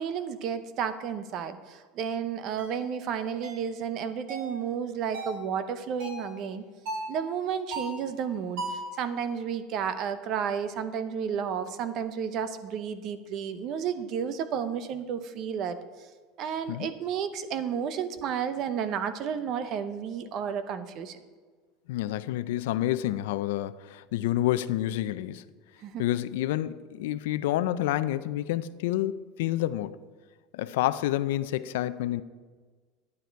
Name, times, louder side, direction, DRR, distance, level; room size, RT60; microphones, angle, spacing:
voice 1, 0.0-6.6 7.1-15.8 16.4-21.2 25.8-26.0, right 7 dB, 35° right, 0.7 m, -32 dB
sound 1, 2.6-2.8 3.4-3.7 4.3-4.6 5.1-5.4 6.0-6.3 6.9-7.1 7.7-8.1 8.6-8.9, right 2 dB, 60° right, 2.6 m, -36 dB
voice 2, 21.9-25.4 26.0-30.0 30.5-32.2, left 14 dB, 90° left, 0.5 m, -29 dB
11.5 x 9.8 x 4.6 m
cardioid pair, 175°, 0 cm